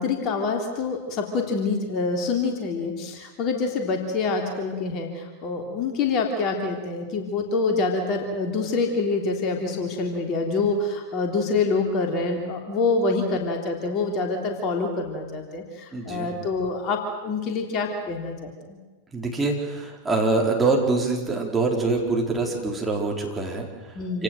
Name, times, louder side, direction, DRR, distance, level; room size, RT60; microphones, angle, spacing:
voice 1, 0.0-18.8 23.9-24.2, left 3 dB, 35° left, 3 dB, 3.4 m, -26 dB
voice 2, 15.9-16.3 19.1-24.2, right 3 dB, 10° right, -1 dB, 4.5 m, -25 dB
27.5 x 18.0 x 7.8 m, 1.3 s
figure-of-eight pair, 90°, 0 cm